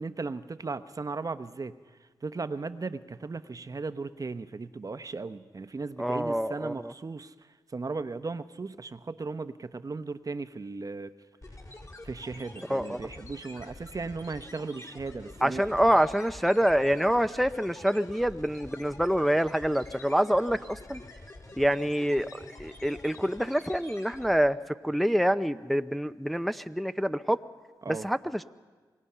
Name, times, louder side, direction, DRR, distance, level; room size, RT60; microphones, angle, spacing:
voice 1, 0.0-1.7 2.2-7.3 7.7-11.1 12.0-16.0 27.8-28.1, right 4 dB, 40° right, 12 dB, 0.9 m, -36 dB
voice 2, 6.0-6.7 12.7-13.0 15.4-21.0 21.6-24.6 24.8-27.4 27.9-28.4, equal, ahead, 10 dB, 0.7 m, -26 dB
sound 1, 11.4-24.6, left 2 dB, 35° left, 4.5 m, -47 dB
25.5 x 19.5 x 5.7 m, 1.4 s
supercardioid pair, 45°, 9 cm